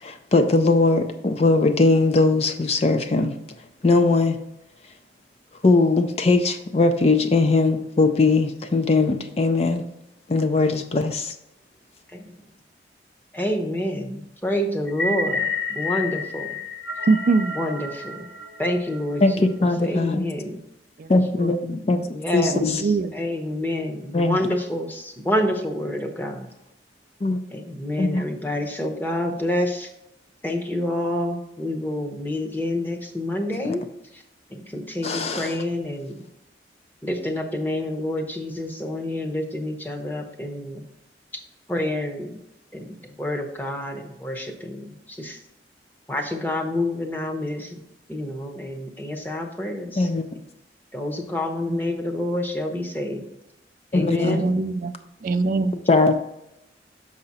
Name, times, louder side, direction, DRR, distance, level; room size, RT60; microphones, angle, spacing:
voice 1, 0.0-3.4 3.8-4.4 5.6-9.9 10.3-11.3 19.2-20.2 21.1-22.8 24.1-24.5 27.2-27.4 28.0-28.3 33.6-33.8 35.0-35.6 50.0-50.2 53.9-54.4 55.9-56.1, left 3 dB, 35° left, 8 dB, 0.4 m, -20 dB
voice 2, 13.3-15.4 15.7-16.5 17.6-18.3 18.6-19.5 19.9-20.5 22.1-26.5 27.5-29.9 30.4-33.8 34.5-36.2 37.0-40.8 41.7-42.4 42.7-45.4 46.1-47.8 48.1-50.1 50.9-53.2 53.9-54.4, left 1 dB, 10° left, 2 dB, 0.8 m, -28 dB
sound 1, 14.9-19.2, left 3 dB, 70° left, 1.2 m, -30 dB
voice 3, 17.1-17.6 21.4-21.6 22.5-23.1 51.7-51.8 54.2-55.7, right 3 dB, 50° right, 11 dB, 0.3 m, -23 dB
6.6 x 4.9 x 4.1 m, 0.86 s
head